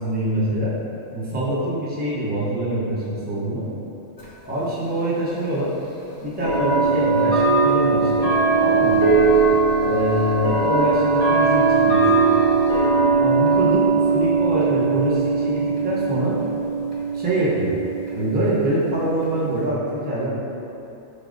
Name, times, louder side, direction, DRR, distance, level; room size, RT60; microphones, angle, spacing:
voice 1, 0.0-0.7 1.1-3.7 4.4-5.7 6.2-9.0 9.8-12.1 13.2-16.4 17.1-17.7 18.1-20.3, right 1 dB, 10° right, -9 dB, 0.6 m, -24 dB
sound 1, 4.2-4.3 5.4-5.5 6.4-19.6, right 4 dB, 35° left, 0.7 m, -20 dB
4.4 x 3.3 x 2.5 m, 2.9 s
omnidirectional pair, 1.3 m